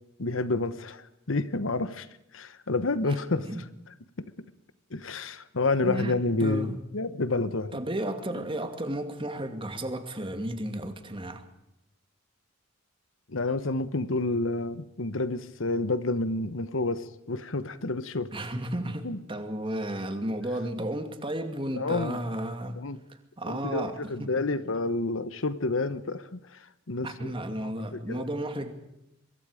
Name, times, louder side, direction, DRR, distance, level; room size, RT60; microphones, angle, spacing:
voice 1, 0.2-2.1 2.3-3.5 4.9-7.8 8.3-8.4 13.3-18.3 19.0-19.2 21.7-22.2 22.8-23.0 23.5-27.3 27.6-28.3, left 2 dB, 80° left, 1.1 m, -29 dB
voice 2, 5.8-6.1 6.4-6.8 7.7-11.4 18.3-22.8 23.4-24.3 27.0-28.7, right 1 dB, 25° right, 2.4 m, -33 dB
24.5 x 23.0 x 5.1 m
head